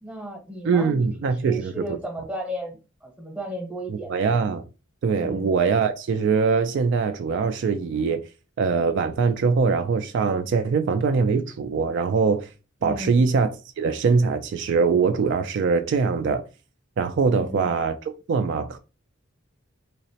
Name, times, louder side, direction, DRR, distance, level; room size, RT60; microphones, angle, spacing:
voice 1, 0.0-1.1 1.4-4.1 5.2-5.5 12.8-13.2 17.3-17.7, right 1 dB, 5° right, 0.8 m, -34 dB
voice 2, 0.6-1.8 3.9-4.6 5.0-8.2 8.6-12.5 12.8-13.5 13.8-16.4 17.0-18.8, right 5 dB, 60° right, 0.3 m, -22 dB
3.8 x 2.0 x 2.7 m
head